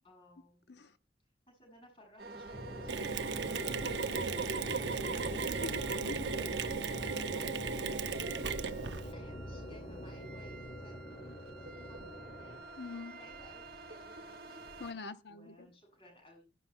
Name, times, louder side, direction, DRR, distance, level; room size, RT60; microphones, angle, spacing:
voice 1, 0.0-0.7 1.5-4.4 4.7-5.6 6.5-8.2 8.8-12.6 13.2-14.6 15.3-16.5, equal, 30° left, 7.2 m, -60 dB
sound 1, 2.2-14.9, right 2 dB, 55° right, 1.7 m, -49 dB
sound 2, 2.5-12.6, equal, 45° left, 2.5 m, -44 dB
Mechanisms, 2.9-9.1, right 5 dB, 85° right, 0.9 m, -36 dB
voice 2, 5.6-6.3 12.8-13.2 14.8-15.7, left 3 dB, 75° left, 1.0 m, -44 dB
17.0 x 13.0 x 2.2 m
head